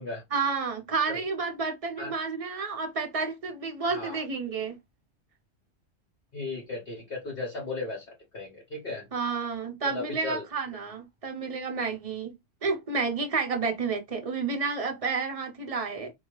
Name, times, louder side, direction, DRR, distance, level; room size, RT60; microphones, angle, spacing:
voice 1, 0.3-4.8 9.1-12.3 12.6-16.1, right 4 dB, 45° right, 0.4 m, -30 dB
voice 2, 3.8-4.2 6.3-8.0 8.3-9.1 9.8-10.4, left 2 dB, 50° left, 1.1 m, -35 dB
2.8 x 2.2 x 3.0 m
omnidirectional pair, 1.3 m